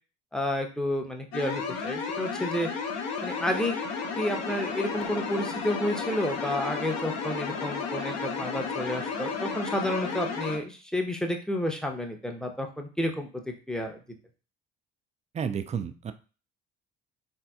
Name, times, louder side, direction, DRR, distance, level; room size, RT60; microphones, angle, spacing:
voice 1, 0.3-2.7 3.2-3.8 4.2-14.0, left 1 dB, ahead, 3 dB, 0.7 m, -30 dB
sound 1, 1.3-10.6, left 5 dB, 55° left, 0.8 m, -33 dB
voice 2, 15.3-16.1, right 7 dB, 25° right, 10 dB, 0.4 m, -31 dB
3.9 x 2.7 x 2.3 m, 0.35 s
hypercardioid pair, 55°, 30 cm